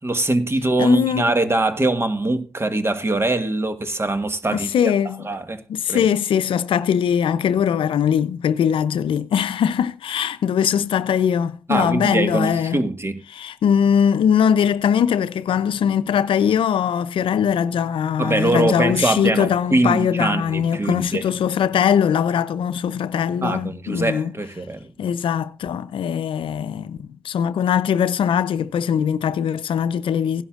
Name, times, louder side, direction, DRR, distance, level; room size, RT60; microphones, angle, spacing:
voice 1, 0.0-4.9 5.2-5.6 5.9-6.0 11.7-13.2 18.2-21.3 23.4-24.9, right 2 dB, 25° right, 1.6 m, -22 dB
voice 2, 0.8-1.2 4.5-5.3 5.7-12.8 13.3-24.3 25.0-30.4, left 8 dB, 70° left, 0.6 m, -21 dB
17.0 x 11.0 x 2.5 m
hypercardioid pair, 45°, 9 cm